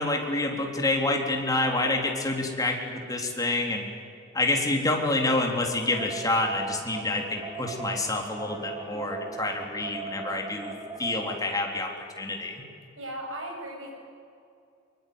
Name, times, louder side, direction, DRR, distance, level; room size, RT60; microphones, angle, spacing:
voice 1, 0.0-3.8 4.3-10.7 11.0-11.9 12.2-12.6, left 2 dB, 20° left, 1 dB, 3.7 m, -27 dB
sound 1, 5.8-11.4, right 4 dB, 25° right, 2.4 m, -39 dB
voice 2, 13.0-13.9, right 1 dB, 75° right, 1 dB, 7.5 m, -36 dB
23.5 x 23.0 x 9.7 m, 2.5 s
head